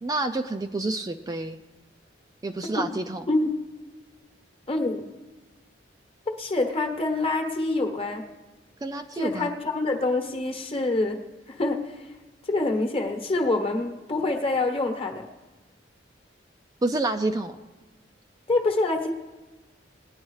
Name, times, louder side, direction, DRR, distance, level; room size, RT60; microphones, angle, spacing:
voice 1, 0.0-1.6 2.4-3.2 8.8-9.5 16.8-17.5, right 2 dB, 20° right, 5 dB, 0.4 m, -28 dB
voice 2, 4.7-5.1 6.3-8.2 9.1-11.2 11.5-12.0 12.5-15.3 18.5-19.1, left 2 dB, 30° left, 4 dB, 1.1 m, -26 dB
19.5 x 9.6 x 3.2 m, 1.2 s
head